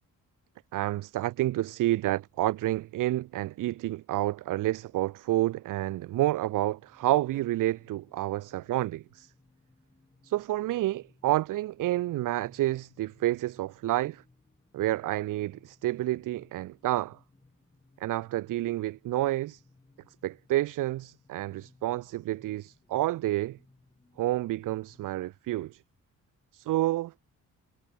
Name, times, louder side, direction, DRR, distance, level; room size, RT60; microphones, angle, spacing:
voice 1, 0.7-9.3 10.2-14.2 14.7-17.2 18.0-19.6 20.2-23.6 24.2-25.8 26.5-27.1, right 16 dB, 75° right, 0.5 m, -29 dB
sound 1, 6.0-25.3, left 2 dB, 15° left, 3.1 m, -63 dB
cardioid pair, 120°, 32 cm